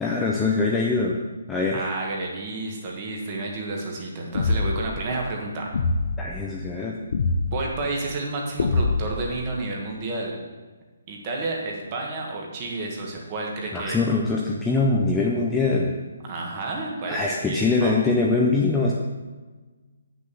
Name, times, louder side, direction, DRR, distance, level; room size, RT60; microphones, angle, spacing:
voice 1, 0.0-1.1 1.5-1.9 6.2-7.0 13.7-15.9 17.1-18.9, left 3 dB, 5° left, -3 dB, 0.5 m, -23 dB
voice 2, 1.7-5.8 7.5-10.4 11.1-14.0 16.2-17.2 17.4-18.1, right 2 dB, 20° right, 0 dB, 1.5 m, -31 dB
sound 1, 4.4-4.9 5.7-6.2 7.1-7.6 8.6-9.3, left 3 dB, 50° left, 0.8 m, -23 dB
8.0 x 6.3 x 6.9 m, 1.3 s
hypercardioid pair, 175°, 0 cm